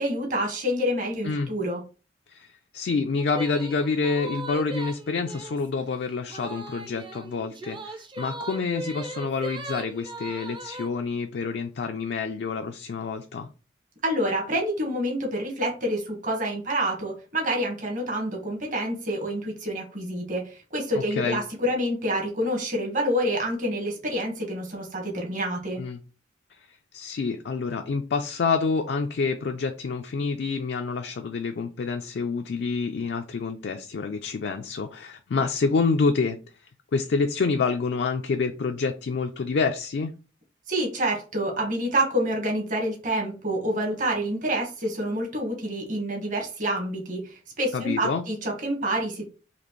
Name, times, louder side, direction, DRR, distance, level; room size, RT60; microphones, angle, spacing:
voice 1, 0.0-1.8 14.0-25.8 40.7-49.2, equal, 45° right, 1 dB, 1.3 m, -27 dB
voice 2, 2.3-13.5 20.9-21.4 25.8-26.0 26.9-36.4 36.9-40.1 47.7-48.2, left 4 dB, 65° left, 5 dB, 0.4 m, -27 dB
sound 1, 3.2-5.7 6.3-10.9, right 2 dB, 25° right, 0.5 m, -38 dB
4.2 x 2.9 x 3.0 m, 0.34 s
head